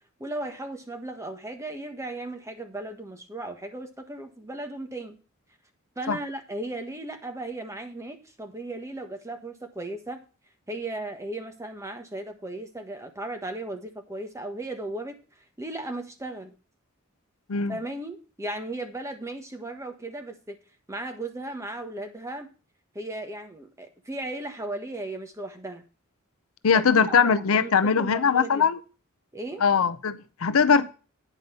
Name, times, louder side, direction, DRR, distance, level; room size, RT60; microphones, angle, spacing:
voice 1, 0.2-5.2 6.0-10.2 10.7-15.2 15.6-16.5 17.7-20.6 20.9-22.5 22.9-25.8 26.7-28.7 29.3-29.6, right 2 dB, 15° right, 1.3 m, -36 dB
voice 2, 26.6-28.8 29.6-30.9, left 6 dB, 70° left, 0.6 m, -21 dB
9.5 x 5.3 x 6.5 m
head